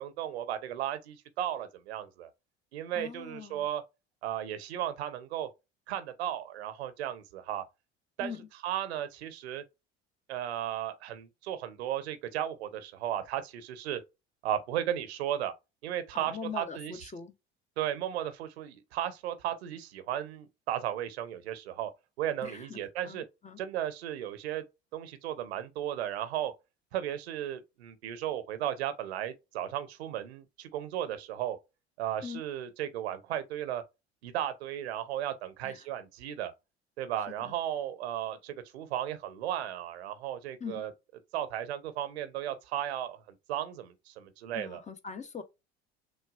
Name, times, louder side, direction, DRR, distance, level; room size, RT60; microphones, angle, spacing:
voice 1, 0.0-2.3 2.7-3.8 4.2-5.5 5.9-7.6 8.2-8.3 8.6-9.6 10.3-14.0 14.4-15.5 15.8-16.9 17.8-21.9 22.2-23.2 23.6-24.6 24.9-26.5 26.9-31.6 32.0-33.8 34.2-36.5 37.0-40.9 41.3-43.2 43.5-44.8, right 11 dB, 75° right, 0.7 m, -35 dB
voice 2, 2.9-3.7 8.2-8.5 16.1-17.3 22.4-23.6 32.2-32.4 35.6-35.9 37.4-37.6 40.6-40.8 44.5-45.4, left 6 dB, 20° left, 0.7 m, -42 dB
6.1 x 2.3 x 2.4 m
figure-of-eight pair, 60°, 32 cm